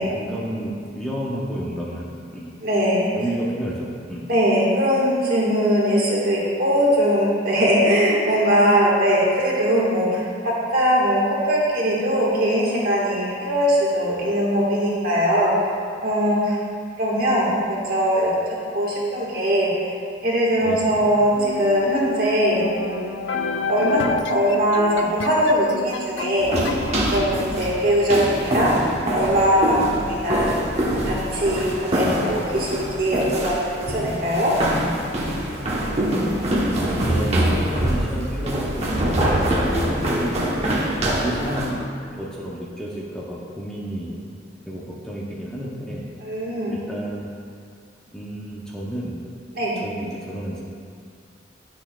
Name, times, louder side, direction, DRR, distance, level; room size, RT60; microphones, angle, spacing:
voice 1, 0.0-2.5 3.1-4.2 20.6-21.1 35.9-39.4 39.7-40.6 41.2-41.8 42.1-44.1 44.7-46.0 46.6-47.3 48.1-49.2 49.8-50.6, equal, 5° left, -6 dB, 0.7 m, -31 dB
voice 2, 2.6-3.1 4.3-11.2 11.5-15.5 16.0-16.6 17.0-18.3 18.7-19.7 20.2-23.0 23.7-24.0 24.3-26.6 27.1-28.8 29.1-30.7 31.0-34.5 46.2-46.7 49.5-49.8, equal, 50° right, -5 dB, 1.5 m, -21 dB
sound 1, 21.4-28.2, left 5 dB, 75° left, 0.4 m, -31 dB
sound 2, 26.4-41.7, right 1 dB, 35° right, 1.0 m, -24 dB
10.5 x 6.2 x 2.3 m, 2.3 s
head